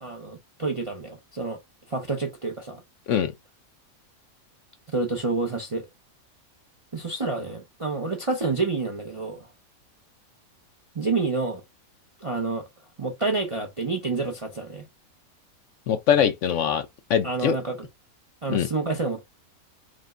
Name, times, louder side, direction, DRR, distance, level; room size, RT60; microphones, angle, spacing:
voice 1, 0.0-1.6 1.9-2.8 4.9-5.9 6.9-9.5 10.9-11.6 12.2-12.7 13.0-14.8 17.2-17.9 18.4-19.2, right 3 dB, 35° right, 0.5 m, -28 dB
voice 2, 15.9-17.6 18.5-18.7, left 8 dB, 65° left, 0.8 m, -23 dB
5.0 x 2.1 x 3.6 m
omnidirectional pair, 1.5 m